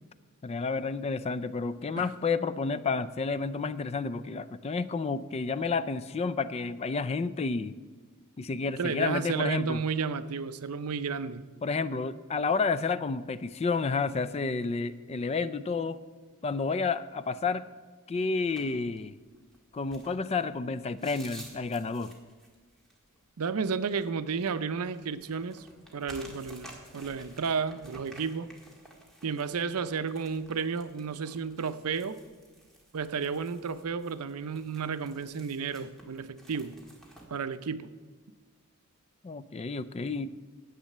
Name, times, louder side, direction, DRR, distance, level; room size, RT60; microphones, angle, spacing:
voice 1, 0.4-7.8 8.4-9.8 11.6-16.0 16.4-17.6 18.1-19.2 19.7-22.1 39.2-40.3, left 4 dB, 30° left, 15 dB, 0.3 m, -30 dB
voice 2, 8.8-11.4 23.4-25.7 25.9-28.5 29.2-32.2 32.9-36.8 37.3-37.9, right 5 dB, 80° right, 13 dB, 0.6 m, -32 dB
sound 1, 18.5-37.3, right 1 dB, ahead, 1.8 m, -53 dB
10.5 x 8.2 x 6.6 m, 1.5 s
head